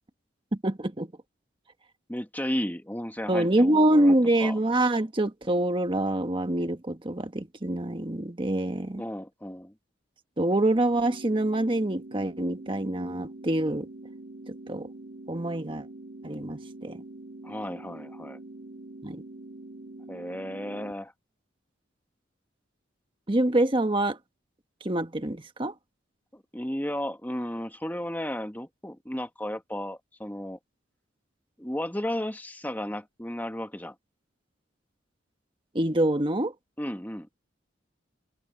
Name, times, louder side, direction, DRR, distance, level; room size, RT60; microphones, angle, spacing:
voice 1, 0.5-1.1 3.3-9.0 10.4-13.9 14.5-14.9 15.3-15.9 16.2-17.0 19.0-19.2 23.3-24.2 24.8-25.7 35.7-36.5, right 1 dB, 25° right, 1.4 m, -25 dB
voice 2, 2.1-4.2 4.4-4.6 9.0-9.7 17.4-18.4 20.1-21.1 26.3-30.6 31.6-34.0 36.8-37.3, left 1 dB, 10° left, 1.8 m, -34 dB
sound 1, 10.9-20.9, right 2 dB, 55° right, 3.8 m, -44 dB
head